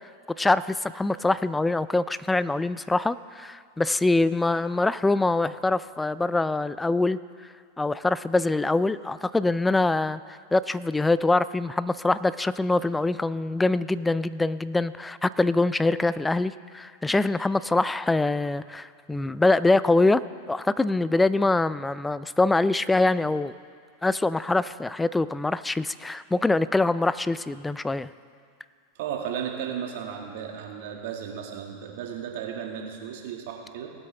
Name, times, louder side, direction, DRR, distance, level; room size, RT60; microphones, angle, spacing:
voice 1, 0.4-7.2 7.8-10.2 10.5-20.2 20.5-23.5 24.0-28.1, left 2 dB, 10° left, 16 dB, 0.3 m, -24 dB
voice 2, 29.0-33.9, right 8 dB, 65° right, 1 dB, 1.8 m, -34 dB
19.0 x 8.4 x 3.4 m, 2.2 s
hypercardioid pair, 100°, 0 cm